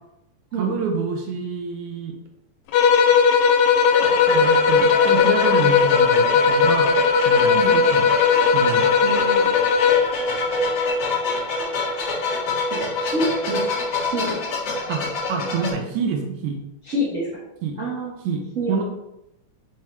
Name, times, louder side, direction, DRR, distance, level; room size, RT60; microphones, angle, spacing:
voice 1, 0.6-2.2 4.3-6.9 7.2-8.1 8.4-8.9 14.9-15.0 15.3-16.6 17.6-17.8 18.2-18.4 18.7-18.8, right 5 dB, 80° right, 2 dB, 2.2 m, -27 dB
sound 1, 2.7-10.2, left 6 dB, 80° left, 1.8 m, -17 dB
sound 2, 3.8-15.7, left 2 dB, 55° left, 2.2 m, -26 dB
voice 2, 9.0-9.5 12.7-13.7 14.0-14.4 16.8-17.3 17.8-18.1 18.5-18.8, right 1 dB, 65° right, -6 dB, 0.8 m, -27 dB
7.3 x 4.6 x 3.1 m, 0.87 s
omnidirectional pair, 3.4 m